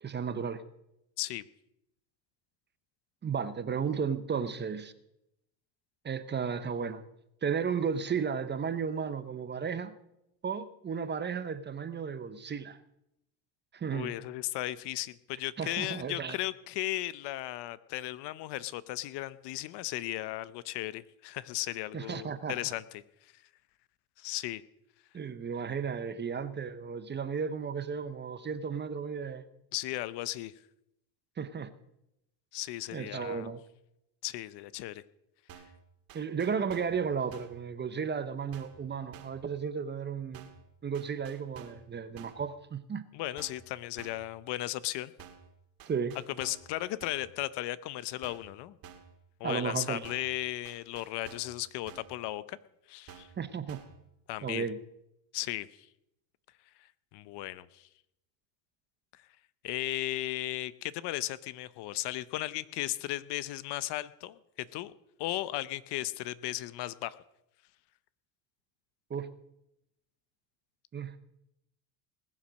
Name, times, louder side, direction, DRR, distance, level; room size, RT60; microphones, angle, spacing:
voice 1, 0.0-0.6 3.2-4.9 6.0-7.0 7.4-9.9 10.4-12.8 13.7-14.1 15.6-16.4 21.9-22.6 25.1-29.4 31.4-31.7 32.9-33.6 36.1-40.5 40.8-43.0 45.9-46.2 49.4-50.0 53.4-53.8 54.4-54.8 69.1-69.3 70.9-71.2, right 6 dB, 20° right, 0.8 m, -34 dB
voice 2, 13.9-23.4 24.2-24.6 29.7-30.5 32.5-33.5 34.2-35.0 43.1-45.1 46.4-48.8 49.4-52.6 52.9-53.3 54.3-54.7 55.3-55.9 57.1-57.9 59.1-59.2 59.6-64.9 65.2-67.2, left 16 dB, 60° left, 0.8 m, -36 dB
sound 1, 35.5-35.8 36.1-37.0 37.3-37.6 38.5-38.8 39.1-39.5 40.3-40.7 40.9-41.9 42.2-42.5 43.4-43.7 44.0-44.3 45.2-45.5 45.8-46.7 47.0-47.3 48.2-48.6 48.8-49.2 50.0-50.4 50.7-51.6 51.9-52.2 53.1-53.4 53.7-54.0, right 7 dB, 45° right, 2.1 m, -51 dB
20.0 x 7.4 x 6.3 m
supercardioid pair, 115°, 48 cm